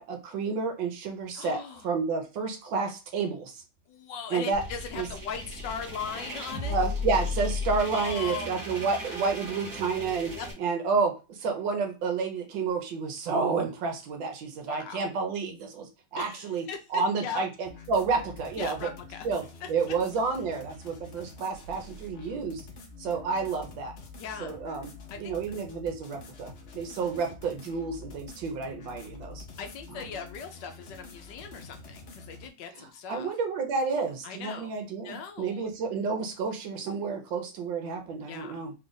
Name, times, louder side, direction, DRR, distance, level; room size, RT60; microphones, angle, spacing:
voice 1, 0.0-3.6 4.3-4.6 5.0-5.1 6.7-10.3 10.6-16.7 16.9-18.9 19.2-22.6 23.0-23.9 24.4-24.9 25.2-29.4 29.9-30.0 32.8-38.7, right 4 dB, 75° right, 4 dB, 1.5 m, -30 dB
voice 2, 1.3-1.9 3.9-6.8 7.9-8.5 10.3-10.5 14.6-15.2 16.2-17.4 18.6-19.3 24.2-24.5 25.1-25.3 29.6-33.3 34.2-34.8 35.0-35.7 38.2-38.6, left 6 dB, 75° left, 5 dB, 1.2 m, -39 dB
sound 1, 4.5-10.5, left 3 dB, 35° right, 1.2 m, -35 dB
sound 2, 17.6-32.5, left 3 dB, 55° left, 0.8 m, -47 dB
3.6 x 2.4 x 3.9 m, 0.30 s
omnidirectional pair, 2.1 m